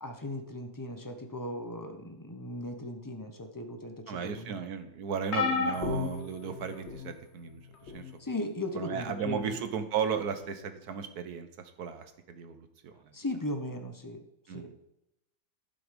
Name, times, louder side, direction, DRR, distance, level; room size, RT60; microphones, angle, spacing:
voice 1, 0.0-4.6 8.2-9.6 13.1-14.2 14.5-14.7, left 1 dB, 20° left, 6 dB, 0.5 m, -37 dB
voice 2, 4.1-7.6 7.9-8.0 8.7-11.5 11.8-13.0 14.5-14.7, right 7 dB, 65° right, 9 dB, 1.4 m, -35 dB
sound 1, 5.3-7.1 7.9-8.1 9.4-9.5, left 5 dB, 45° left, 1.3 m, -32 dB
11.5 x 6.1 x 5.2 m, 0.83 s
omnidirectional pair, 1.9 m